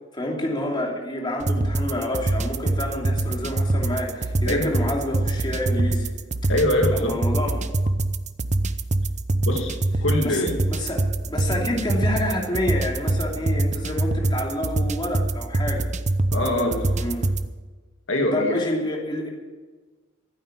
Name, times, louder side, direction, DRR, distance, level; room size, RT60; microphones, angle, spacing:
voice 1, 0.1-6.1 6.9-7.7 10.2-15.9 16.6-17.3 18.3-19.3, left 1 dB, 25° left, -1 dB, 2.9 m, -28 dB
sound 1, 1.4-17.5, right 2 dB, 35° right, 0.7 m, -25 dB
voice 2, 6.5-7.2 9.4-10.6 11.5-11.7 16.3-17.0 18.1-18.6, left 1 dB, 75° left, 3 dB, 2.0 m, -24 dB
15.5 x 9.4 x 7.5 m, 1.3 s
head